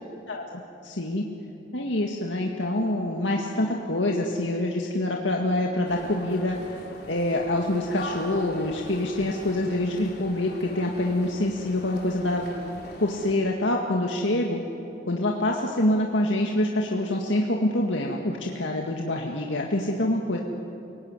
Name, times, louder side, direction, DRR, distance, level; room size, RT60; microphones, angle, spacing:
voice 1, 0.3-1.3 1.7-6.6 7.1-12.5 13.0-14.6 15.1-20.4, left 1 dB, 85° left, 0 dB, 2.0 m, -26 dB
sound 1, 5.8-13.3, left 1 dB, 60° left, 3.9 m, -41 dB
29.5 x 18.0 x 9.8 m, 2.8 s
head